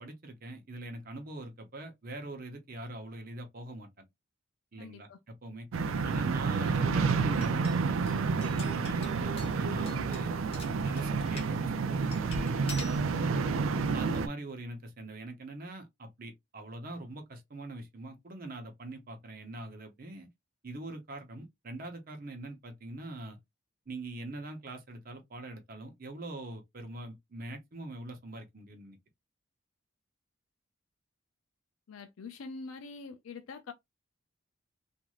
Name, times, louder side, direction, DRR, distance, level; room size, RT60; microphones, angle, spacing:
voice 1, 0.0-4.0 4.7-5.7 6.0-10.4 10.8-12.5 13.9-20.3 20.6-23.4 23.9-29.0, right 2 dB, 45° right, 0.7 m, -43 dB
voice 2, 4.8-5.2 13.1-14.2 31.9-33.7, left 4 dB, 85° left, 0.4 m, -46 dB
sound 1, 5.7-14.3, right 4 dB, 75° right, 0.4 m, -29 dB
sound 2, 7.1-11.5 12.1-13.0, left 2 dB, 30° left, 1.1 m, -48 dB
3.0 x 2.5 x 2.4 m
head